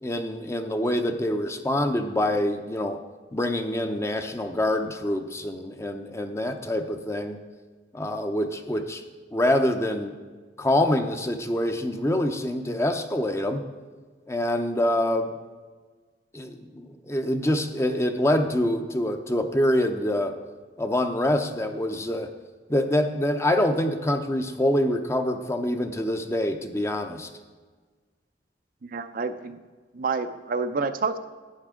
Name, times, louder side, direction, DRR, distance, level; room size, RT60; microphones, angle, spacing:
voice 1, 0.0-3.0 3.3-7.4 7.9-9.0 9.3-10.2 10.6-13.6 14.3-15.3 16.3-20.3 20.8-22.3 22.7-27.3, left 1 dB, 15° left, 7 dB, 0.6 m, -25 dB
voice 2, 28.8-29.6 29.9-31.2, right 4 dB, 50° right, 9 dB, 0.5 m, -28 dB
12.0 x 9.4 x 3.7 m, 1.4 s
head